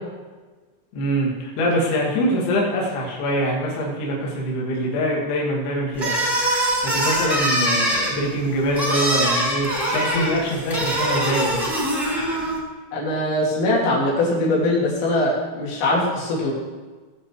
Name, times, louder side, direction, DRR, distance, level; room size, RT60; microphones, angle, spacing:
voice 1, 0.9-6.3 6.8-11.7, equal, 60° left, -3 dB, 3.7 m, -24 dB
sound 1, 5.9-12.6, right 1 dB, 10° right, 1.0 m, -23 dB
voice 2, 12.9-16.5, left 1 dB, 80° left, -5 dB, 5.6 m, -21 dB
18.5 x 7.4 x 4.8 m, 1.3 s
omnidirectional pair, 5.8 m